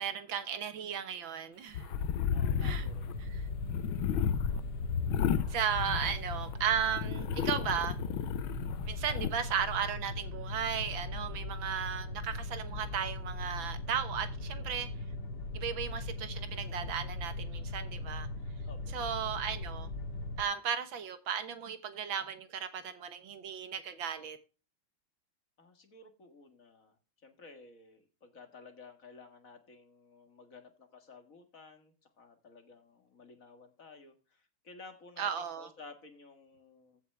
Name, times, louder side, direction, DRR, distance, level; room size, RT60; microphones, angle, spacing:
voice 1, 0.0-1.9 2.6-2.9 3.2-3.5 5.5-8.0 8.9-14.9 15.5-18.3 18.9-19.9 20.4-24.4 35.2-35.7, right 8 dB, 75° right, 2.0 m, -35 dB
sound 1, 1.7-6.5 6.9-9.3, left 8 dB, 85° left, 1.5 m, -33 dB
voice 2, 2.3-3.1 9.1-9.4 18.6-19.0 25.6-27.0 27.2-37.0, left 4 dB, 45° left, 2.1 m, -54 dB
sound 2, 2.4-20.4, left 2 dB, 65° left, 2.1 m, -39 dB
15.0 x 6.6 x 3.3 m
omnidirectional pair, 2.2 m